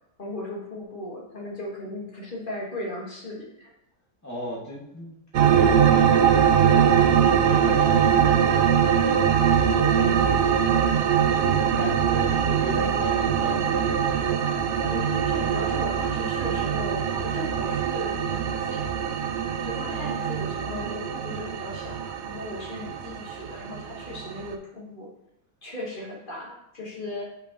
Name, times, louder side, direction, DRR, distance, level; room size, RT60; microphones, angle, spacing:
voice 1, 0.2-3.7 9.8-10.9 14.8-18.8 19.6-25.1 25.6-27.3, left 1 dB, 35° left, -3 dB, 1.5 m, -37 dB
voice 2, 4.2-8.7 11.3-13.8 19.8-20.1, equal, 10° left, -5 dB, 1.7 m, -36 dB
sound 1, 5.3-24.5, right 8 dB, 65° right, 0.6 m, -22 dB
7.1 x 5.6 x 3.0 m, 0.80 s
omnidirectional pair, 1.6 m